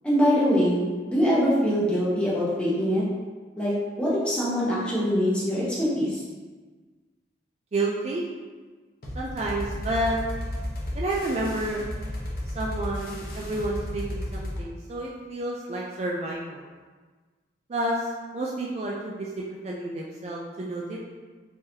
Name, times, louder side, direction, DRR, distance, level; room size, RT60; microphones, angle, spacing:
voice 1, 0.0-3.0 3.6-3.7 4.0-6.2, equal, 5° left, -9 dB, 0.9 m, -23 dB
voice 2, 7.7-8.2 9.1-10.2 10.9-11.8 12.5-16.6 17.7-21.0, right 1 dB, 35° right, -3 dB, 0.3 m, -30 dB
sound 1, 9.0-14.6, left 1 dB, 55° left, 0.7 m, -33 dB
3.7 x 2.9 x 2.7 m, 1.4 s
head